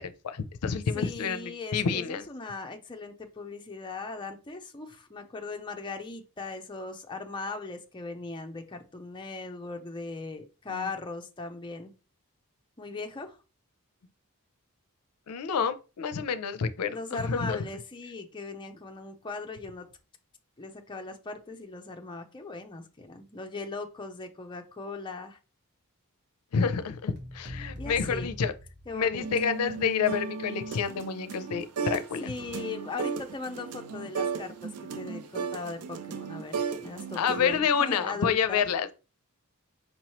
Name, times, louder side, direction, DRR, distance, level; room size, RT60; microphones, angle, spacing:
voice 1, 0.0-2.2 10.7-10.9 15.3-17.6 26.5-28.5 28.9-32.3 37.2-39.0, left 6 dB, 85° left, 0.4 m, -29 dB
voice 2, 0.9-11.9 12.8-13.4 16.9-19.9 20.6-25.4 27.8-28.4 28.9-29.2 32.2-38.7, left 3 dB, 20° left, 0.5 m, -39 dB
sound 1, 27.2-29.4, left 1 dB, 50° right, 1.3 m, -42 dB
sound 2, 29.2-32.1 32.4-37.6, right 5 dB, 90° right, 0.5 m, -35 dB
5.4 x 2.9 x 2.9 m
head